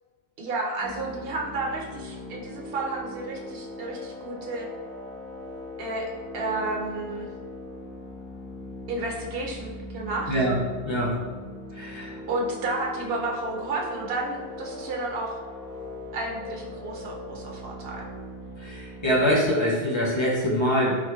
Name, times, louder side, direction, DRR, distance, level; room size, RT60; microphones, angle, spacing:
voice 1, 0.4-4.7 5.8-6.1 6.3-7.3 8.9-10.3 12.3-15.4 16.1-18.1, right 2 dB, 55° right, -1 dB, 0.8 m, -31 dB
sound 1, 0.8-19.3, left 1 dB, 10° right, 0.7 m, -40 dB
voice 2, 11.8-12.2 18.6-21.0, equal, 40° left, -5 dB, 0.4 m, -24 dB
3.9 x 2.9 x 2.3 m, 1.5 s
omnidirectional pair, 1.3 m